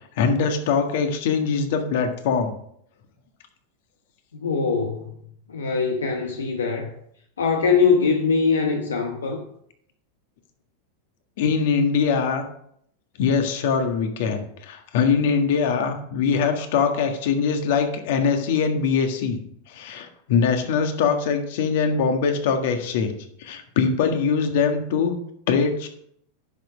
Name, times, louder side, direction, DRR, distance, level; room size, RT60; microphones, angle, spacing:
voice 1, 0.2-2.5 11.4-12.4 13.2-19.4 19.7-23.1 23.4-25.2 25.5-25.9, left 5 dB, 65° left, 6 dB, 1.6 m, -22 dB
voice 2, 4.3-5.1 5.5-6.9 7.4-9.4, left 5 dB, 85° left, 3 dB, 1.0 m, -22 dB
10.5 x 6.4 x 5.0 m, 0.70 s
hypercardioid pair, 95°, 0 cm